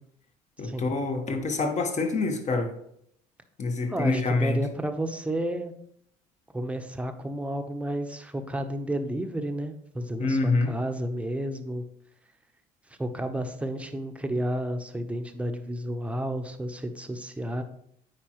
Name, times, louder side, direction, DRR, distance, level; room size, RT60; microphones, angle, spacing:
voice 1, 0.6-2.7 3.6-4.6 10.2-10.7, left 3 dB, 40° left, 5 dB, 1.4 m, -26 dB
voice 2, 3.9-5.7 6.5-11.8 12.9-17.6, right 1 dB, 5° right, 6 dB, 0.9 m, -31 dB
8.4 x 4.9 x 3.1 m, 0.69 s
supercardioid pair, 80°, 18 cm